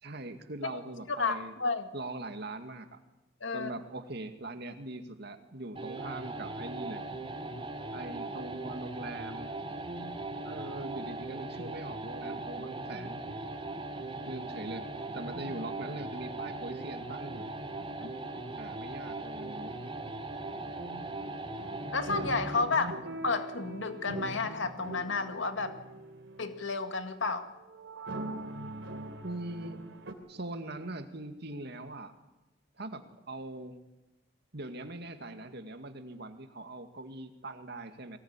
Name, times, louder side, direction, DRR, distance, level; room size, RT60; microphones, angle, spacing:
voice 1, 0.0-1.6 1.9-3.0 3.5-7.0 7.9-9.5 10.4-13.2 14.3-17.5 18.6-19.7 22.7-23.0 29.2-29.8 30.3-32.1 32.8-33.8 34.5-38.2, right 2 dB, 60° right, 7 dB, 2.2 m, -41 dB
voice 2, 1.1-1.9 3.4-3.7 18.0-18.1 21.9-22.9 23.2-25.8 26.4-27.5, left 4 dB, 75° left, 8 dB, 2.0 m, -31 dB
sound 1, 5.7-22.8, right 2 dB, 30° right, 2.9 m, -39 dB
sound 2, 21.5-26.6 27.7-30.1, right 1 dB, 75° right, 3.4 m, -42 dB
23.0 x 18.5 x 9.8 m, 1.0 s
head